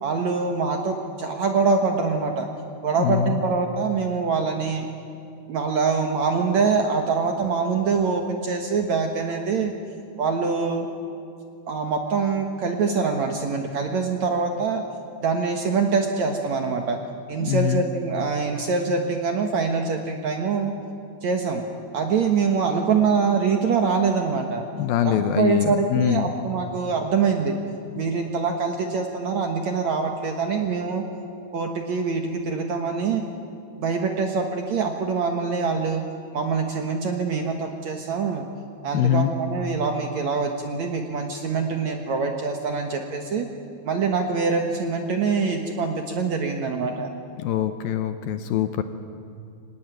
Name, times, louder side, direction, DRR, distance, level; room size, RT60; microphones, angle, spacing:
voice 1, 0.0-2.5 2.8-4.9 5.5-9.7 10.2-10.9 11.7-14.8 15.2-17.0 17.3-20.7 21.2-21.6 21.9-24.6 25.0-27.6 27.9-31.0 31.5-33.2 33.8-36.0 36.3-38.5 38.8-43.5 43.8-47.1, right 5 dB, 60° right, 4 dB, 2.0 m, -24 dB
voice 2, 3.0-3.4 17.4-17.8 24.8-26.3 38.9-39.3 47.4-48.8, left 10 dB, 75° left, 9 dB, 2.4 m, -23 dB
24.5 x 19.0 x 9.2 m, 2.5 s
omnidirectional pair, 4.8 m